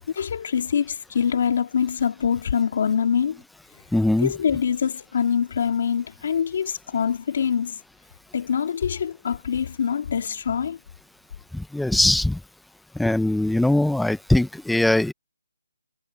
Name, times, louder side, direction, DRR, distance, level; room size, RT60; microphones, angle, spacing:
voice 1, 0.1-3.4 4.2-7.8 8.3-10.8, left 7 dB, 45° left, 3.1 m, -24 dB
voice 2, 3.9-4.3 11.5-12.4 12.9-15.1, left 1 dB, ahead, 0.9 m, -21 dB
hypercardioid pair, 170°, 0 cm